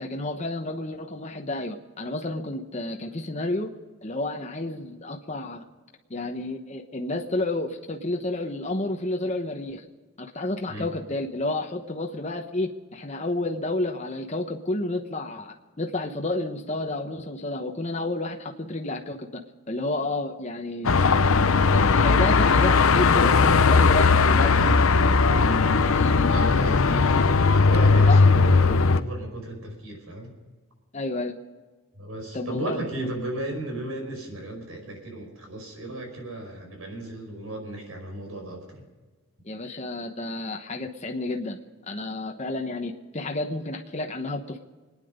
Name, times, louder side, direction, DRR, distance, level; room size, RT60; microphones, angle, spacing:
voice 1, 0.0-3.7 4.0-5.6 6.1-9.8 10.2-19.4 19.7-20.9 21.9-24.6 25.2-26.6 28.1-28.2 30.9-31.3 32.3-32.8 39.4-41.6 41.9-44.6, left 2 dB, 30° left, 3 dB, 1.0 m, -30 dB
Car passing by / Traffic noise roadway noise / Engine, 20.8-29.0, left 4 dB, 75° left, 0.7 m, -18 dB
voice 2, 21.7-22.0 26.3-27.4 27.7-30.3 32.0-38.8, right 1 dB, 80° right, 3 dB, 5.2 m, -35 dB
25.5 x 10.0 x 5.2 m, 1.3 s
head